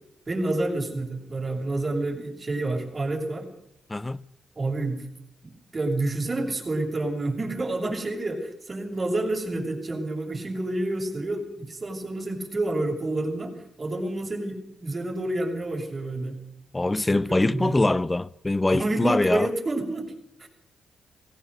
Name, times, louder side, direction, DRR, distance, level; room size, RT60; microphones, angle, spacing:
voice 1, 0.3-3.5 4.6-5.0 5.4-16.4 17.1-17.9 18.7-20.1 20.4-20.5, right 2 dB, 40° right, 6.7 m, -29 dB
voice 2, 16.7-19.5, left 2 dB, 25° left, 0.8 m, -23 dB
20.0 x 17.0 x 7.9 m
supercardioid pair, 45°, 0 cm